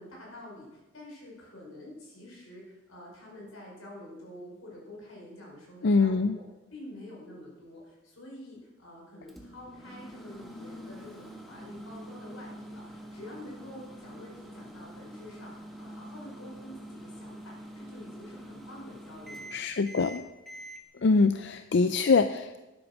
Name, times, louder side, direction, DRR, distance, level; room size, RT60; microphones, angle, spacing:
voice 1, 0.0-6.4 6.7-19.6, left 1 dB, 85° left, -2 dB, 5.3 m, -47 dB
voice 2, 5.8-6.4 19.5-20.2 21.0-22.6, left 4 dB, 55° left, 10 dB, 0.4 m, -24 dB
Microwave oven, 9.3-20.8, equal, ahead, 1.4 m, -45 dB
11.0 x 8.8 x 6.1 m, 1.0 s
head